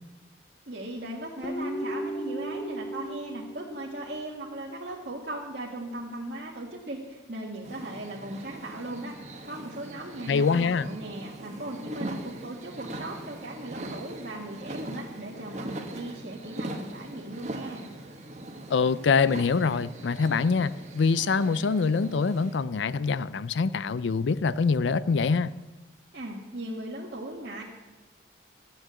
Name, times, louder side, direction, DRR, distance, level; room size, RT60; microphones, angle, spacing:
voice 1, 0.7-17.8 26.1-27.6, right 1 dB, 55° right, -4 dB, 1.7 m, -38 dB
Guitar, 1.4-4.7, right 1 dB, 25° left, 1.1 m, -36 dB
sound 1, 7.6-22.6, right 1 dB, 35° right, 1.2 m, -41 dB
voice 2, 10.3-10.9 18.7-25.5, left 5 dB, 75° left, 17 dB, 0.4 m, -24 dB
14.0 x 9.1 x 7.7 m, 1.2 s
head